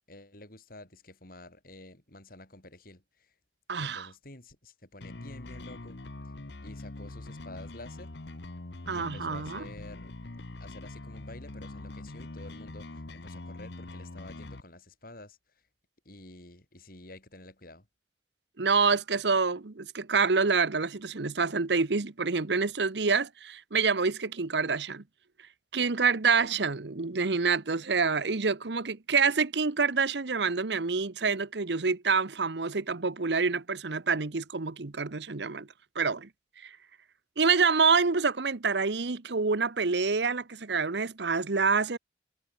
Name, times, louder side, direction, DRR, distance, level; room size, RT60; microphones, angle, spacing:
voice 1, 0.1-3.3 3.8-6.0 6.6-8.1 8.9-10.2 10.6-15.4 16.1-17.9, left 2 dB, 55° left, 5.2 m, -49 dB
voice 2, 3.7-4.1 8.9-9.6 18.6-25.0 25.7-35.7 35.9-36.3 36.6-36.8 37.4-42.0, right 5 dB, 75° right, 1.0 m, -27 dB
sound 1, 5.0-14.6, left 2 dB, 70° left, 1.2 m, -43 dB
head